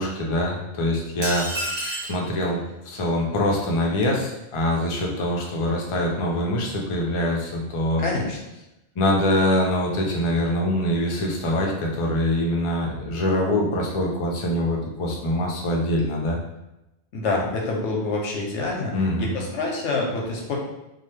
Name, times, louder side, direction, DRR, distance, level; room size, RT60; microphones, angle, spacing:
voice 1, 0.0-1.6 2.1-2.6 2.9-8.0 9.0-16.4 18.9-19.4, left 1 dB, 45° left, -1 dB, 0.4 m, -24 dB
sound 1, 1.2-2.2, right 1 dB, 40° right, 0.9 m, -29 dB
voice 2, 8.0-8.4 17.1-20.5, left 3 dB, 90° left, -1 dB, 1.0 m, -27 dB
2.9 x 2.2 x 3.2 m, 0.93 s
omnidirectional pair, 1.2 m